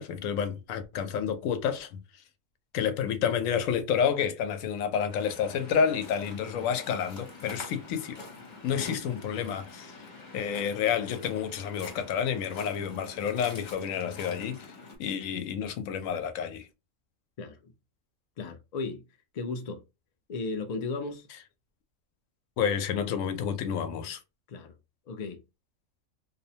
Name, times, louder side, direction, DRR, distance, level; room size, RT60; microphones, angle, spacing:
voice 1, 0.0-2.0 2.7-8.2 8.6-9.9 10.3-14.7 15.0-16.7 22.6-24.2, left 7 dB, 90° left, 1.0 m, -29 dB
Waves surf, 5.1-15.0, left 3 dB, 40° left, 0.9 m, -46 dB
voice 2, 17.4-17.7 18.4-19.0 19.3-19.8 20.3-21.3 24.5-24.7 25.1-25.4, left 3 dB, 60° left, 0.4 m, -35 dB
2.7 x 2.1 x 2.7 m
omnidirectional pair, 1.3 m